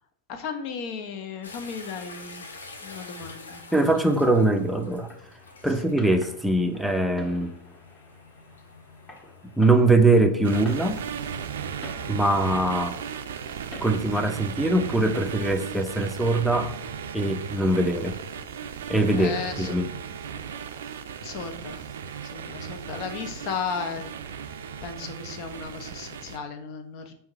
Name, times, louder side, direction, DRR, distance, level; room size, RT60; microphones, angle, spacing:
voice 1, 0.3-2.5 2.8-3.6 5.8-6.0 19.1-19.7 21.2-21.8 22.2-24.1 24.8-27.1, left 5 dB, 50° left, 6 dB, 0.7 m, -35 dB
sound 1, 1.4-9.7, left 3 dB, 85° left, 0.7 m, -46 dB
voice 2, 3.7-5.1 5.6-7.5 9.6-11.0 12.1-13.0 13.8-16.7 17.1-18.1 18.9-19.3 19.6-19.9, right 2 dB, ahead, 4 dB, 0.6 m, -22 dB
Fireworks, 4.9-14.9, left 2 dB, 20° left, 1.3 m, -49 dB
sound 2, 10.4-26.4, right 7 dB, 70° right, 0.4 m, -36 dB
3.6 x 2.7 x 4.6 m, 0.68 s
hypercardioid pair, 100°, 0 cm